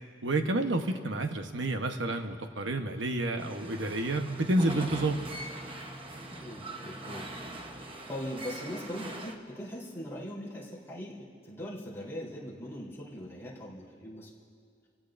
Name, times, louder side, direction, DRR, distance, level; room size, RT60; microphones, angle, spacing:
voice 1, 0.2-5.2, right 2 dB, 85° right, 5 dB, 1.1 m, -29 dB
sound 1, 3.4-9.3, right 1 dB, 30° right, 1.0 m, -41 dB
voice 2, 6.4-7.3 8.1-14.3, equal, 15° left, -7 dB, 3.7 m, -40 dB
29.0 x 17.0 x 2.6 m, 2.3 s
head